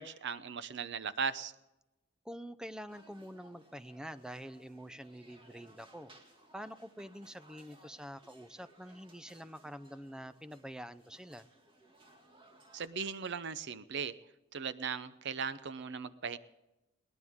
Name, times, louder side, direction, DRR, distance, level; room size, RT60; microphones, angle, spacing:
voice 1, 0.0-1.5 12.7-14.1 14.5-16.4, right 6 dB, 60° right, 14 dB, 0.7 m, -38 dB
voice 2, 2.2-6.1 6.5-11.5, equal, 5° right, 13 dB, 0.5 m, -46 dB
sound 1, 2.9-12.9, right 1 dB, 25° right, 2.2 m, -61 dB
22.0 x 18.0 x 3.6 m, 0.97 s
head